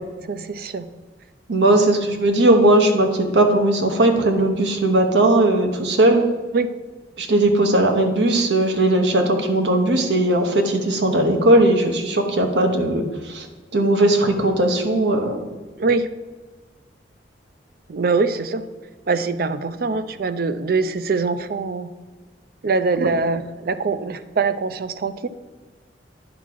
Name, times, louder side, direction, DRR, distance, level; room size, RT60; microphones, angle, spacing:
voice 1, 0.2-0.9 1.7-1.8 6.5-6.7 15.8-16.1 17.9-18.6 19.1-21.9 22.6-25.3, right 4 dB, 55° right, 11 dB, 0.4 m, -23 dB
voice 2, 1.5-6.2 7.2-13.5 13.7-15.4 23.0-23.1, right 1 dB, 80° right, 5 dB, 1.0 m, -18 dB
9.7 x 3.6 x 6.0 m, 1.4 s
head